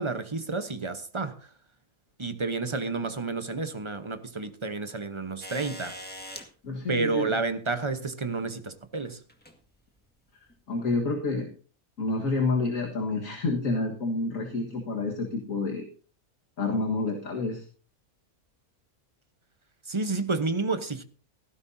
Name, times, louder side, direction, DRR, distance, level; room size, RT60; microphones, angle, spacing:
voice 1, 0.0-1.5 2.2-6.0 6.9-9.2 19.9-21.0, right 3 dB, 25° right, 0.9 m, -30 dB
sound 1, 5.4-6.5 7.9-8.0 9.3-9.6 10.5-10.6, equal, 5° left, 1.8 m, -41 dB
voice 2, 6.6-7.3 10.7-11.5 12.0-15.9 16.6-17.7, left 3 dB, 65° left, 2.0 m, -28 dB
17.0 x 15.0 x 2.7 m
omnidirectional pair, 1.5 m